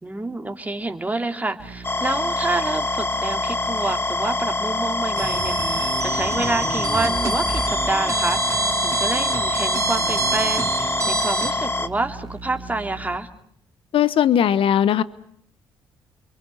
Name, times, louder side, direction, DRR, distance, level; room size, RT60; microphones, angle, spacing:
voice 1, 0.0-13.3, right 2 dB, 15° right, 5 dB, 3.1 m, -28 dB
sound 1, 1.6-13.2, right 3 dB, 80° right, 3.2 m, -39 dB
sound 2, 1.8-11.9, left 2 dB, 25° left, 1.3 m, -25 dB
sound 3, 5.1-11.5, right 3 dB, 35° right, 2.5 m, -26 dB
voice 2, 13.9-15.0, left 9 dB, 65° left, 16 dB, 1.2 m, -18 dB
30.0 x 23.0 x 7.8 m, 0.66 s
supercardioid pair, 60°, 10 cm